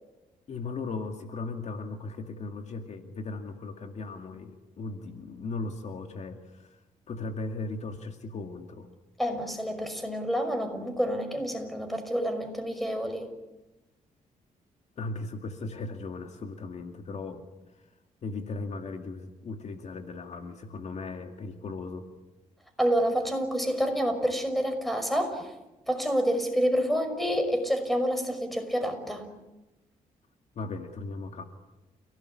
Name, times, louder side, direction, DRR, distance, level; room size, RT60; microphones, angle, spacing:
voice 1, 0.5-6.8 7.1-8.9 15.0-17.9 18.2-22.1 30.6-31.4, left 3 dB, 55° left, 5 dB, 2.3 m, -37 dB
voice 2, 9.2-13.3 22.8-25.5 25.9-29.3, equal, ahead, 7 dB, 5.7 m, -28 dB
30.0 x 18.0 x 10.0 m, 1.0 s
cardioid pair, 110°, 14 cm